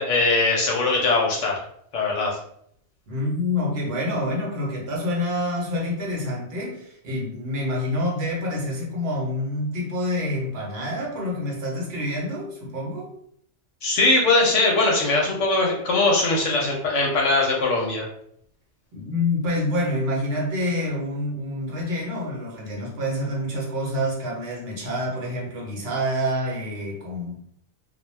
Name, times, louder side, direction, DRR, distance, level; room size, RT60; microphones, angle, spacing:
voice 1, 0.0-1.5 1.9-2.4 13.8-18.1, left 2 dB, 70° left, 0.9 m, -21 dB
voice 2, 3.1-13.1 18.9-27.4, left 1 dB, 55° right, 0.9 m, -27 dB
2.3 x 2.2 x 3.1 m
omnidirectional pair, 1.4 m